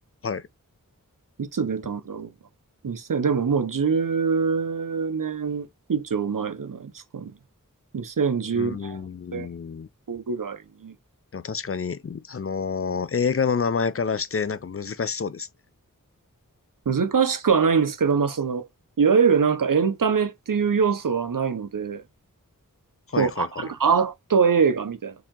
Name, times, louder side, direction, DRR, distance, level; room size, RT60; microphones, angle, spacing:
voice 1, 1.4-2.3 2.8-7.3 7.9-9.0 9.3-9.5 10.1-10.9 16.9-18.7 19.0-22.0 23.2-25.1, right 6 dB, 70° right, 0.7 m, -23 dB
voice 2, 8.5-9.9 11.3-15.5 23.1-23.6, left 5 dB, 45° left, 0.4 m, -28 dB
4.9 x 2.8 x 3.6 m
wide cardioid pair, 45°, 33 cm